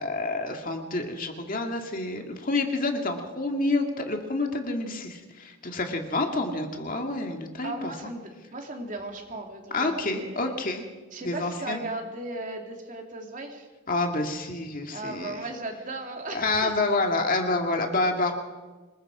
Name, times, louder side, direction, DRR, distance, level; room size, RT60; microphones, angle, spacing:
voice 1, 0.0-7.9 9.7-10.8 11.2-11.8 13.9-15.3 16.3-18.3, left 2 dB, 40° left, 3 dB, 2.1 m, -28 dB
voice 2, 7.6-10.5 11.1-13.7 14.9-16.7, right 2 dB, 40° right, 2 dB, 2.8 m, -36 dB
27.0 x 21.0 x 4.9 m, 1.3 s
head